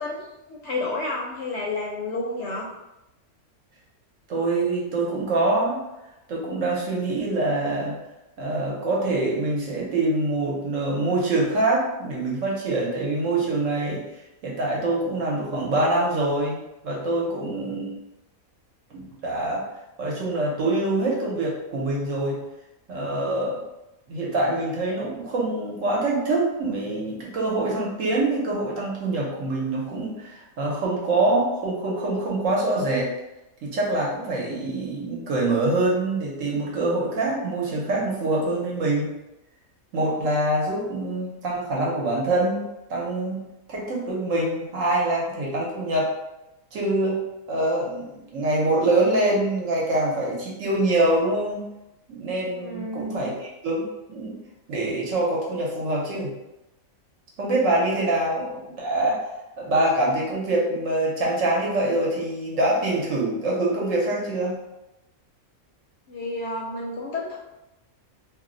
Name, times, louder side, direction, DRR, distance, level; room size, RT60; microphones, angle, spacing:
voice 1, 0.0-2.7 52.5-53.3 66.1-67.4, left 2 dB, 65° left, -3 dB, 0.7 m, -31 dB
voice 2, 4.3-5.8 6.3-8.0 8.4-14.0 14.4-16.6 16.8-17.9 18.9-19.6 20.0-22.4 22.9-23.6 24.1-33.1 33.6-39.1 39.9-42.6 42.9-43.4 43.7-46.1 46.7-47.2 47.5-51.6 52.1-54.4 54.7-56.3 57.4-59.2 59.6-64.6, right 2 dB, 65° right, -3 dB, 1.1 m, -25 dB
2.6 x 2.1 x 3.7 m, 0.94 s
omnidirectional pair, 1.5 m